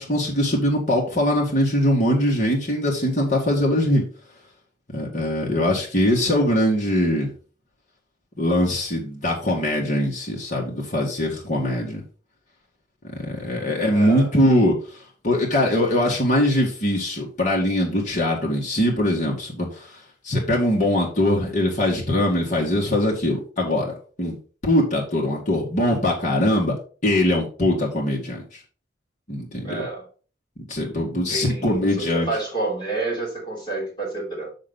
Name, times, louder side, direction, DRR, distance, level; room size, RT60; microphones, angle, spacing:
voice 1, 0.0-4.0 4.9-7.3 8.4-12.0 13.1-14.8 15.2-19.9 20.2-24.4 24.6-26.8 27.0-28.4 29.3-29.8 30.7-32.3, left 1 dB, 45° left, -2 dB, 1.9 m, -22 dB
voice 2, 13.8-14.3 29.6-30.1 31.3-34.5, right 3 dB, 25° left, -4 dB, 3.2 m, -29 dB
6.7 x 6.5 x 3.9 m, 0.38 s
head